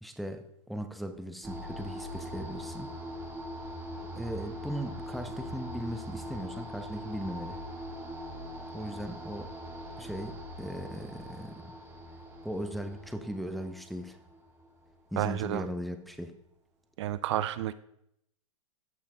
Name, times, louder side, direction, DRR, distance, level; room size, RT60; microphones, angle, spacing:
voice 1, 0.0-2.9 4.2-7.6 8.7-9.5 10.0-11.7 12.4-14.2 15.1-16.4, equal, ahead, 6 dB, 0.5 m, -38 dB
sound 1, 1.4-15.6, equal, 15° right, 2.0 m, -42 dB
voice 2, 15.2-15.7 17.0-17.7, right 12 dB, 55° right, 15 dB, 0.4 m, -30 dB
14.5 x 5.8 x 2.2 m, 0.78 s
hypercardioid pair, 120°, 17 cm